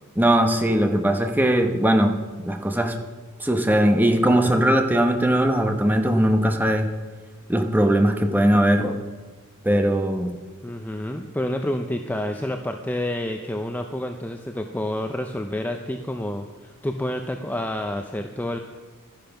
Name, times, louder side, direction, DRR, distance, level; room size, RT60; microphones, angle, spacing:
voice 1, 0.2-2.1 2.4-2.9 3.4-6.9 7.5-8.9 9.6-10.3, right 1 dB, 10° right, 5 dB, 0.9 m, -20 dB
voice 2, 10.6-18.6, left 1 dB, 10° left, 4 dB, 0.5 m, -29 dB
12.0 x 10.5 x 5.9 m, 1.4 s
head